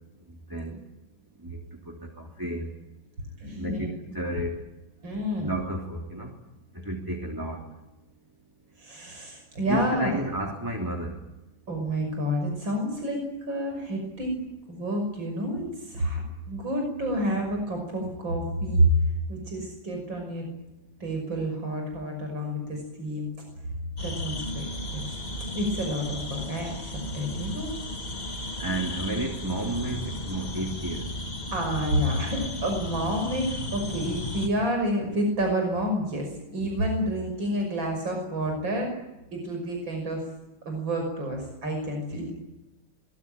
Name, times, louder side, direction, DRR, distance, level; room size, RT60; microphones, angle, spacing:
voice 1, 0.5-0.8 1.4-1.6 1.9-2.7 3.6-4.6 5.4-6.3 6.8-7.6 9.7-11.2 28.6-31.0, right 1 dB, 10° right, 0 dB, 3.2 m, -32 dB
voice 2, 3.4-3.9 5.0-5.5 8.8-10.2 11.7-14.4 14.7-16.2 16.5-18.9 19.3-20.5 21.0-23.3 24.0-25.2 25.5-27.7 31.5-38.9 39.3-40.2 40.7-42.3, right 1 dB, 85° right, 3 dB, 6.7 m, -29 dB
sound 1, 24.0-34.5, left 1 dB, 25° left, 2.1 m, -35 dB
23.5 x 22.0 x 9.1 m, 0.99 s
omnidirectional pair, 2.0 m